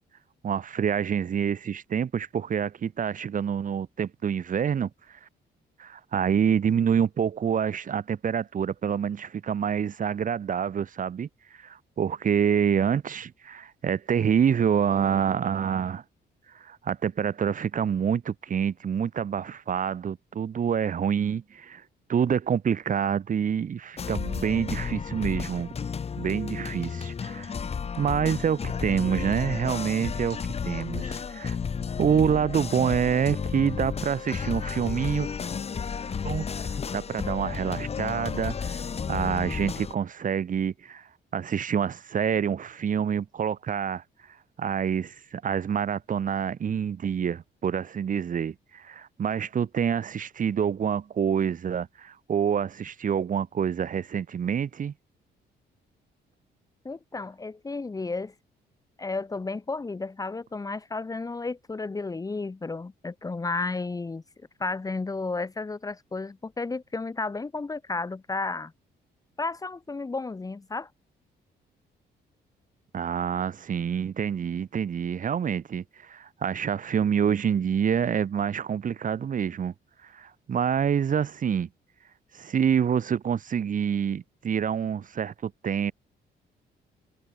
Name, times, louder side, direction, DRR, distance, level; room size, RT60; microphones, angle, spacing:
voice 1, 0.4-4.9 5.8-11.3 11.6-16.0 16.5-21.8 22.1-25.7 26.2-27.5 28.0-30.4 30.6-31.6 32.0-35.3 36.2-38.8 39.1-41.1 41.3-44.0 44.6-54.9 72.9-79.7 80.1-81.7 82.3-85.9, right 8 dB, 50° right, 4.7 m, -27 dB
sound 1, 24.0-39.9, left 6 dB, 35° left, 1.8 m, -32 dB
voice 2, 56.8-58.3 59.0-64.2 64.6-68.7 69.4-70.9, left 3 dB, 20° left, 1.6 m, -32 dB
cardioid pair, 125°, 18 cm